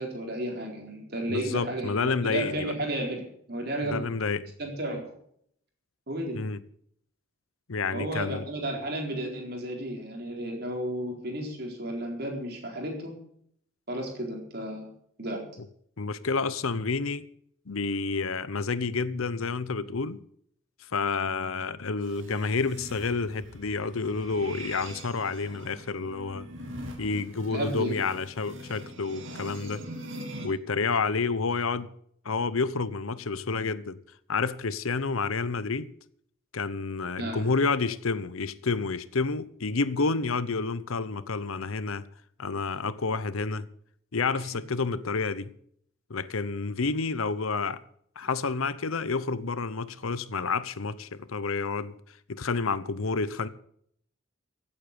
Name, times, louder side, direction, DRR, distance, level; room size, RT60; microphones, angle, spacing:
voice 1, 0.0-4.0 4.6-5.1 6.1-6.4 7.9-13.2 13.9-14.9 15.2-15.4 27.5-28.0 37.2-37.5, right 1 dB, 50° right, 4.2 m, -33 dB
voice 2, 1.3-2.7 3.8-4.5 6.3-6.6 7.7-8.4 16.0-17.2 17.7-20.2 20.9-26.5 27.0-29.8 30.4-31.9 32.2-34.0 34.3-35.9 36.5-42.0 42.4-43.7 44.1-45.5 46.1-47.8 48.2-52.0 52.3-53.5, left 4 dB, 80° left, 0.8 m, -29 dB
sound 1, 22.0-30.5, right 1 dB, 65° right, 2.7 m, -43 dB
16.0 x 8.5 x 6.9 m
head